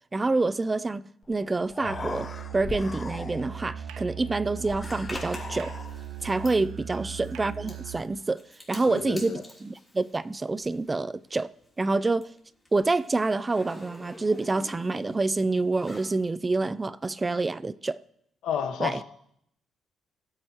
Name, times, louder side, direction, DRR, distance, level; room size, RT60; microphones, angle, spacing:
voice 1, 0.1-5.7 6.2-11.5 11.8-12.3 12.7-18.0 18.8-19.0, right 3 dB, 25° right, 0.4 m, -27 dB
Human voice, 1.2-1.3 1.6-3.7 4.6-6.3, left 4 dB, 35° left, 0.6 m, -39 dB
Musical instrument, 1.8-8.1, right 8 dB, 85° right, 0.6 m, -39 dB
Zipper (clothing), 4.8-11.0 11.2-16.2, left 1 dB, 10° left, 3.1 m, -47 dB
voice 2, 8.9-9.4 18.4-19.0, left 8 dB, 80° left, 1.2 m, -31 dB
18.5 x 7.7 x 2.9 m
cardioid pair, 90°, 0 cm